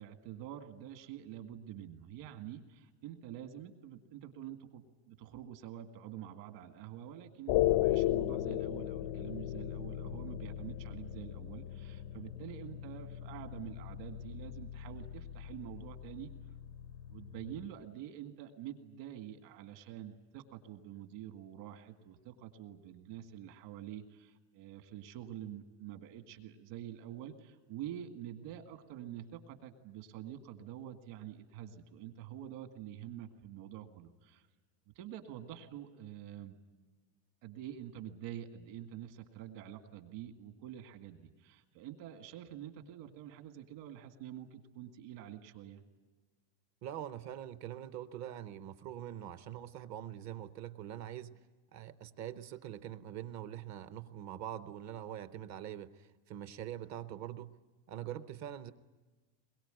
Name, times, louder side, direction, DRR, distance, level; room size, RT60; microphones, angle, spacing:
voice 1, 0.0-16.3 17.1-34.5 35.0-36.6 37.4-45.8, right 11 dB, 60° right, 7 dB, 2.0 m, -47 dB
sound 1, 7.5-17.7, left 14 dB, 90° left, 0.9 m, -36 dB
voice 2, 46.8-51.4 51.7-57.5 57.9-58.7, right 11 dB, 35° right, 13 dB, 0.7 m, -44 dB
22.5 x 22.0 x 9.0 m, 1.3 s
cardioid pair, 175°, 49 cm